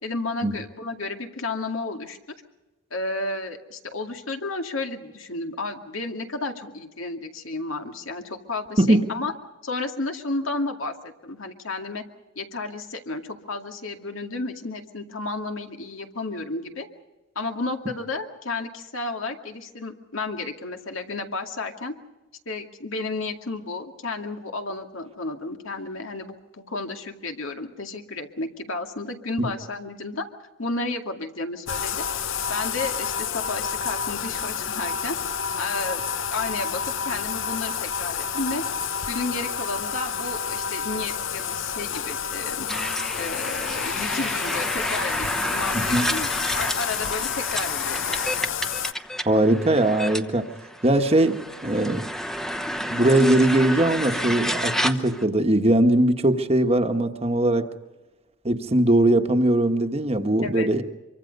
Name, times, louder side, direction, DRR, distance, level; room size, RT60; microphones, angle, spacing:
voice 1, 0.0-2.2 2.9-9.3 9.6-12.0 12.4-16.9 17.4-21.9 22.5-30.3 30.6-32.1 32.5-35.2 35.6-36.0 36.3-38.6 39.1-42.7 43.2-46.3 46.5-48.2 60.4-60.7, left 3 dB, 80° left, 4 dB, 2.3 m, -32 dB
Bathtub (filling or washing), 31.7-48.9, left 7 dB, 65° left, 0.7 m, -29 dB
sound 1, 42.7-55.2, equal, ahead, 0.9 m, -30 dB
voice 2, 45.7-46.1 49.2-50.5 50.8-52.1 52.9-57.7 58.4-60.8, right 1 dB, 30° right, 6 dB, 1.3 m, -20 dB
25.0 x 24.0 x 5.4 m, 1.1 s
head